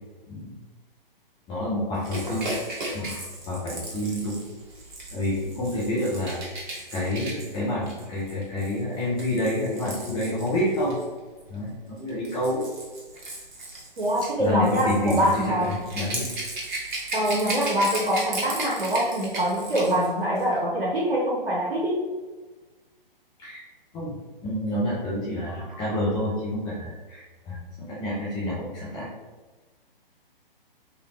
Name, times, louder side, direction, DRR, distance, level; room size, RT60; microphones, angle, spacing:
voice 1, 1.5-2.5 2.9-4.4 5.1-6.4 6.9-11.0 11.5-12.6 14.4-16.3 23.4-23.6 23.9-24.2 24.4-29.1, left 1 dB, 15° left, -9 dB, 0.9 m, -28 dB
Rattle / Rattle (instrument), 2.0-11.0 12.0-20.1 20.4-20.5, right 1 dB, 55° right, 1.3 m, -36 dB
voice 2, 14.0-15.8 17.1-22.0, equal, 80° right, -4 dB, 1.1 m, -24 dB
4.7 x 3.2 x 3.1 m, 1.3 s
figure-of-eight pair, 130°, 29 cm